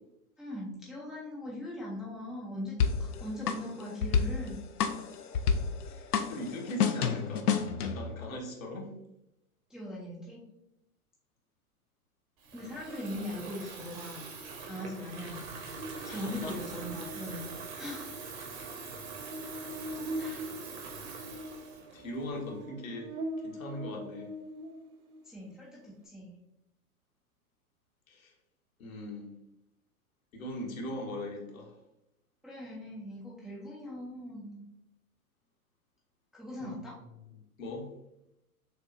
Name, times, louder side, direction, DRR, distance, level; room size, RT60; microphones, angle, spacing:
voice 1, 0.4-2.7 3.0-4.6 9.7-10.4 12.5-14.2 14.6-15.6 16.0-18.3 20.2-20.6 25.2-26.4 32.4-34.7 36.3-36.9, left 1 dB, ahead, -7 dB, 0.4 m, -40 dB
sound 1, 2.8-8.1, left 6 dB, 85° left, 0.6 m, -30 dB
voice 2, 5.9-7.5 7.8-8.9 15.9-16.6 19.7-20.0 21.9-24.3 28.1-28.3 28.8-29.3 30.3-31.8 36.6-36.7 37.6-37.9, left 1 dB, 65° left, 0 dB, 1.2 m, -40 dB
Water tap faucet / Fill (with liquid), 12.4-22.6, right 4 dB, 45° right, 1.1 m, -44 dB
Buzz, 15.8-25.2, right 1 dB, 75° right, 0.6 m, -43 dB
6.5 x 2.4 x 2.5 m, 0.88 s
figure-of-eight pair, 110°, 44 cm